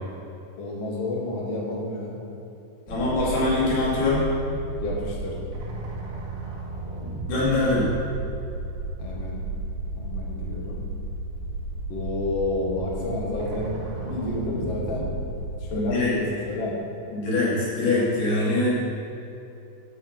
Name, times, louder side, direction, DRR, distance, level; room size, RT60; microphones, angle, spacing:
voice 1, 0.6-2.2 4.8-5.4 9.0-9.4 9.9-10.8 11.9-15.1 15.6-16.8, left 2 dB, 80° left, -3 dB, 1.3 m, -30 dB
voice 2, 2.9-4.3 7.3-7.9 15.7-16.1 17.1-18.7, left 2 dB, 60° left, -7 dB, 4.6 m, -23 dB
sound 1, 2.9-15.7, right 2 dB, 70° right, 4.2 m, -33 dB
9.9 x 6.8 x 6.0 m, 2.8 s
omnidirectional pair, 5.4 m